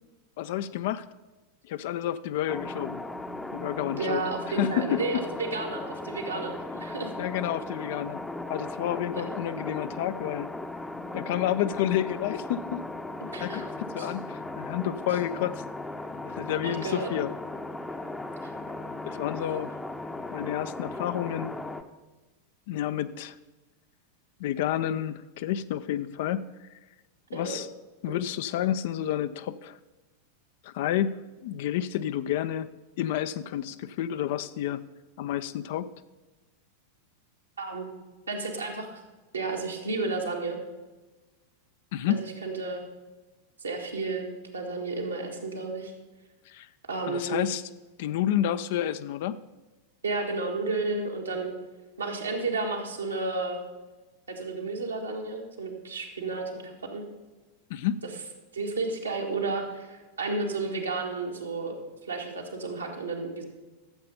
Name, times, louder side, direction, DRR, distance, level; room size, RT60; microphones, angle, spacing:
voice 1, 0.4-1.1 1.6-3.0 3.5-4.2 4.6-5.0 7.2-8.2 8.5-10.5 11.1-12.8 13.4-15.6 16.3-17.3 19.0-19.7 20.3-21.5 22.7-23.4 24.4-26.7 27.3-27.7 28.0-29.8 30.6-31.1 31.4-32.7 33.0-34.8 35.2-35.9 41.9-42.3 46.5-46.7 47.0-47.6 48.0-49.4 57.7-58.0, left 11 dB, 50° left, 12 dB, 0.4 m, -30 dB
sound 1, 2.5-21.8, left 2 dB, 5° left, 0.7 m, -37 dB
voice 2, 4.0-7.1 9.1-9.3 13.2-13.6 14.0-14.1 16.6-17.1 18.4-18.5 27.3-27.6 37.6-37.9 38.3-39.0 39.3-40.6 42.1-42.8 43.6-44.3 44.5-45.9 46.9-47.4 50.0-51.5 52.0-53.6 54.3-57.0 58.5-61.8 62.1-63.4, right 3 dB, 75° right, 1 dB, 1.9 m, -32 dB
12.5 x 7.5 x 5.5 m, 1.2 s
figure-of-eight pair, 90°, 0 cm